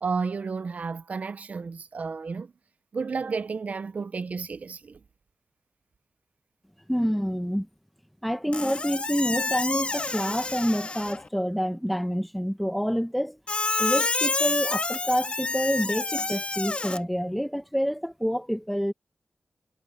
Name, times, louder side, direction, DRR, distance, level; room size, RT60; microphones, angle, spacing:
voice 1, 0.0-2.5 2.9-5.0, right 5 dB, 60° right, 0.6 m, -32 dB
voice 2, 6.9-7.7 8.2-13.4 13.8-18.9, equal, ahead, 1.2 m, -27 dB
Squeak, 8.5-11.3 13.5-17.0, left 3 dB, 45° left, 1.8 m, -28 dB
cardioid pair, 65°, 3 cm